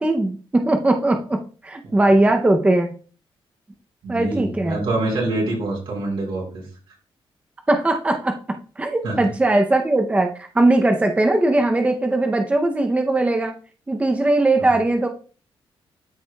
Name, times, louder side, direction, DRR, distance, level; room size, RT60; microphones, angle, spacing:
voice 1, 0.0-2.9 4.1-4.8 7.7-8.3 8.8-13.5 13.9-15.1, right 2 dB, 15° right, 4 dB, 0.6 m, -19 dB
voice 2, 4.0-6.6 9.0-9.2, right 2 dB, 75° right, -2 dB, 4.2 m, -25 dB
12.5 x 4.9 x 2.3 m, 0.38 s
wide cardioid pair, 160°, 9 cm